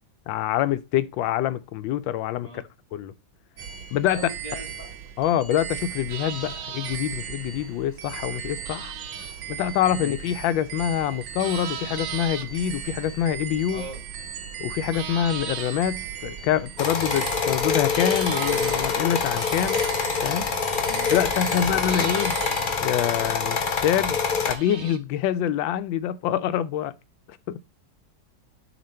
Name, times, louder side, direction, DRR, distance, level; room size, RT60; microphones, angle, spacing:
voice 1, 0.3-2.6 2.9-3.1 3.9-4.3 5.2-8.9 9.5-13.9 14.6-19.8 20.2-20.5 21.1-22.4 22.8-24.2 24.5-26.9 27.5-27.6, left 10 dB, 90° left, 1.3 m, -25 dB
sound 1, 3.6-22.8, right 8 dB, 85° right, 1.5 m, -37 dB
voice 2, 4.1-4.9 9.9-10.1 13.7-14.0 20.9-21.1 21.5-21.6, left 1 dB, 25° left, 1.9 m, -39 dB
sound 2, 6.1-25.0, right 9 dB, 70° right, 1.3 m, -40 dB
sound 3, 16.8-24.5, left 5 dB, 55° left, 0.5 m, -25 dB
6.9 x 3.3 x 4.3 m
omnidirectional pair, 2.0 m